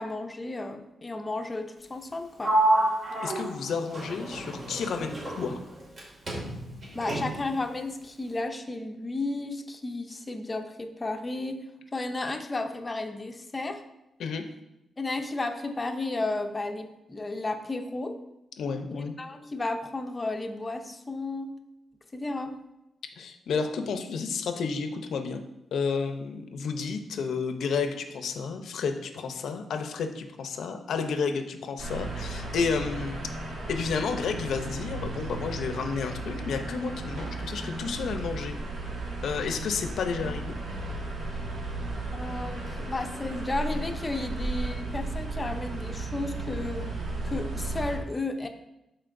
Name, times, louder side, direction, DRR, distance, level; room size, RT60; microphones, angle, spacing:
voice 1, 0.0-2.6 6.9-11.6 11.9-13.8 15.0-18.1 18.9-21.5 22.1-22.6 41.9-47.0 47.2-48.5, left 2 dB, 25° left, 6 dB, 0.7 m, -33 dB
Sliding door, 2.4-6.0 6.3-7.6, right 1 dB, 45° right, 2.4 m, -29 dB
voice 2, 3.2-5.6 14.2-14.5 18.6-19.1 23.2-25.4 25.7-33.2 33.7-38.6 39.2-40.6, left 5 dB, 80° left, 8 dB, 0.7 m, -31 dB
sound 1, 31.8-48.0, right 2 dB, 70° right, 1.9 m, -35 dB
12.0 x 4.4 x 2.6 m, 0.91 s
cardioid pair, 115°, 0 cm